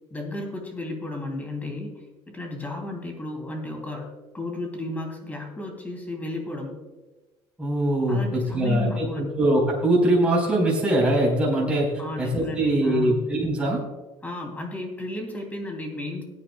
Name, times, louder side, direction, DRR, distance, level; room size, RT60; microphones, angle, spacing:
voice 1, 0.1-1.9 2.3-6.8 8.1-9.3 12.0-13.3 14.2-16.2, left 1 dB, 15° left, 2 dB, 2.9 m, -33 dB
voice 2, 7.6-11.9 12.2-13.8, right 1 dB, 10° right, -3 dB, 4.3 m, -22 dB
20.0 x 9.6 x 2.3 m, 1.2 s
cardioid pair, 115°, 10 cm